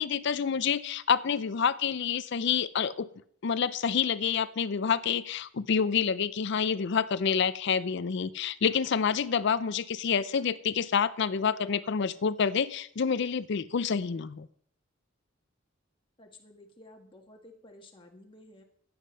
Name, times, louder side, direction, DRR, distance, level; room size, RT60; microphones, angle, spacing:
voice 1, 0.0-3.1 3.4-14.5, left 6 dB, 60° left, 16 dB, 0.5 m, -28 dB
voice 2, 16.2-18.6, left 1 dB, 25° left, 2 dB, 1.7 m, -53 dB
11.5 x 9.5 x 5.6 m, 0.64 s
head